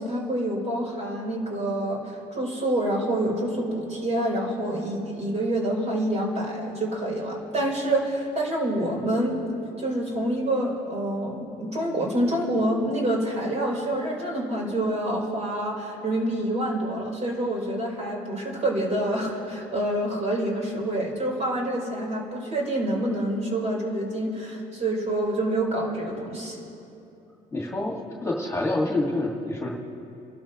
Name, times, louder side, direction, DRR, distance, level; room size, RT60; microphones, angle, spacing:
voice 1, 0.0-9.4 9.8-26.6, right 1 dB, 40° right, -3 dB, 4.4 m, -27 dB
voice 2, 27.5-29.7, left 2 dB, 15° left, -2 dB, 2.0 m, -27 dB
28.5 x 12.5 x 3.1 m, 2.8 s
cardioid pair, 110°, 17 cm